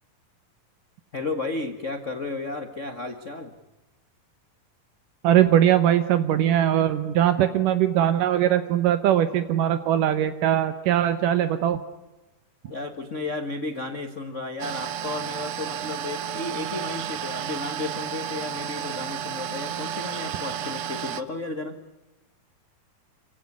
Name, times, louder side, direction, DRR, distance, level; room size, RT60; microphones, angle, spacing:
voice 1, 1.1-3.5 12.6-21.8, left 3 dB, 75° left, 7 dB, 0.6 m, -33 dB
voice 2, 5.2-11.8, right 11 dB, 75° right, 11 dB, 2.5 m, -21 dB
sound 1, 14.6-21.2, right 9 dB, 90° right, 1.2 m, -32 dB
27.5 x 17.0 x 9.8 m, 1.0 s
omnidirectional pair, 4.0 m